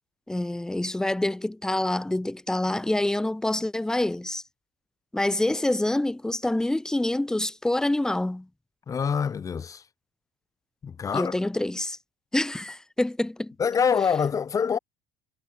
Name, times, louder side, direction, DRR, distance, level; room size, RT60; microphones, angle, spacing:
voice 1, 0.3-4.4 5.1-8.5 11.1-12.0 12.3-13.5, left 1 dB, 5° left, 0.9 m, -26 dB
voice 2, 8.9-9.8 10.8-11.3 13.6-14.8, left 6 dB, 30° left, 1.8 m, -25 dB
cardioid pair, 115°, 11 cm